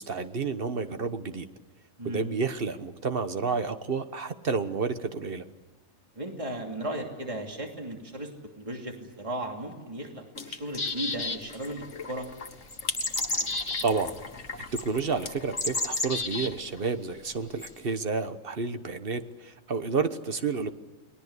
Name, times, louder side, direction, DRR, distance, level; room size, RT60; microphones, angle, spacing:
voice 1, 0.0-1.5 2.0-5.4 13.8-14.4 14.7-20.7, right 4 dB, 45° right, 9 dB, 1.3 m, -30 dB
voice 2, 2.0-2.3 6.2-8.3 8.6-12.3, right 1 dB, 25° right, 2 dB, 2.9 m, -36 dB
sound 1, 10.3-16.9, left 4 dB, 60° left, 1.9 m, -41 dB
sound 2, 10.7-11.7 12.7-13.9 14.8-14.9 15.6-16.5 17.6-17.7, left 2 dB, 25° left, 1.4 m, -30 dB
30.0 x 20.5 x 8.2 m, 1.2 s
omnidirectional pair, 1.4 m